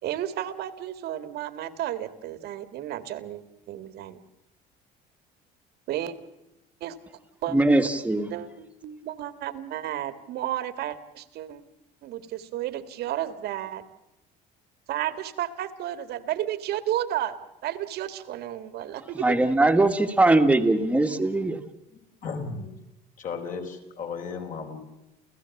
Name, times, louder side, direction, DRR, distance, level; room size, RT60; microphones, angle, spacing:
voice 1, 0.0-4.2 5.9-6.1 6.8-7.0 7.4-7.6 8.3-11.6 12.0-13.8 14.9-17.4 17.6-19.4, right 12 dB, 65° right, 1.9 m, -32 dB
voice 2, 7.5-8.3 19.2-21.6, right 2 dB, 5° right, 1.8 m, -21 dB
voice 3, 21.9-22.7 23.2-24.8, left 5 dB, 50° left, 4.5 m, -35 dB
30.0 x 15.5 x 7.1 m
cardioid pair, 125°, 18 cm